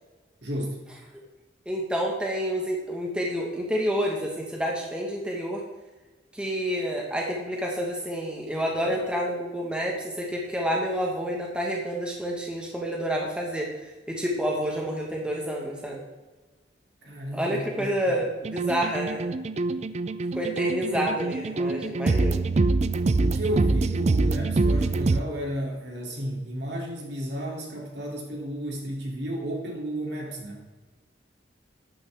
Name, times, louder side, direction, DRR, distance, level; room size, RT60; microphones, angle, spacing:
voice 1, 0.4-0.8 17.0-17.9 20.5-21.0 23.2-30.6, equal, 65° right, -1 dB, 2.9 m, -33 dB
voice 2, 1.6-5.6 6.3-13.7 14.1-16.0 17.3-19.3 20.3-22.4, equal, 5° right, -1 dB, 1.4 m, -29 dB
sound 1, 18.4-25.2, right 3 dB, 35° right, 0.4 m, -25 dB
12.0 x 9.4 x 3.5 m, 1.2 s
head